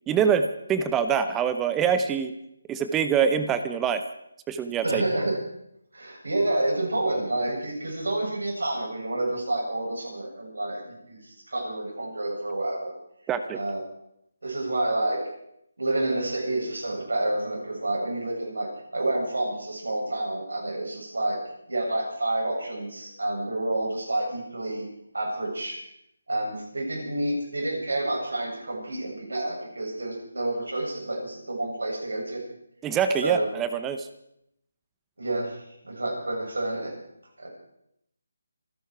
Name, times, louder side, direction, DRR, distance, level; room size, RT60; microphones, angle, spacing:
voice 1, 0.1-2.3 2.7-4.0 4.5-5.0 13.3-13.6 32.8-34.1, right 7 dB, 10° right, 10 dB, 0.8 m, -25 dB
voice 2, 4.8-5.4 5.9-12.9 13.6-13.8 14.4-15.2 15.8-21.4 21.7-24.9 25.1-25.8 26.3-32.4 33.2-33.5 35.2-37.0 37.4-37.5, right 1 dB, 80° right, -1 dB, 7.6 m, -29 dB
27.0 x 11.0 x 4.7 m, 0.76 s
figure-of-eight pair, 160°, 0 cm